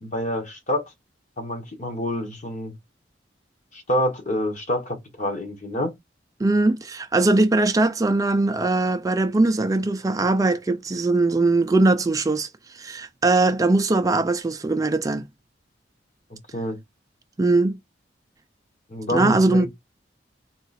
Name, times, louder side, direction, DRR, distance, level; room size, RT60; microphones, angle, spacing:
voice 1, 0.0-0.9 1.4-2.7 3.7-5.9 16.3-16.8 18.9-19.7, left 1 dB, 45° left, 1.1 m, -27 dB
voice 2, 6.4-15.2 17.4-17.8 19.1-19.7, right 2 dB, 20° right, 0.3 m, -21 dB
3.8 x 2.4 x 4.1 m
head